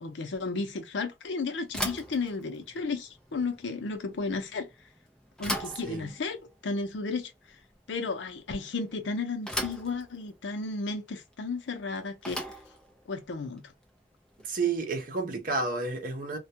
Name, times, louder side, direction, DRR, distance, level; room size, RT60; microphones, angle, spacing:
voice 1, 0.0-4.7 5.4-7.3 7.9-12.5 13.1-13.7, left 3 dB, 90° left, 0.6 m, -33 dB
Bicycle / Thump thud, 1.7-14.8, equal, 5° left, 0.5 m, -40 dB
voice 2, 5.8-6.1 14.4-16.4, right 4 dB, 50° right, 0.7 m, -31 dB
2.3 x 2.1 x 2.7 m
head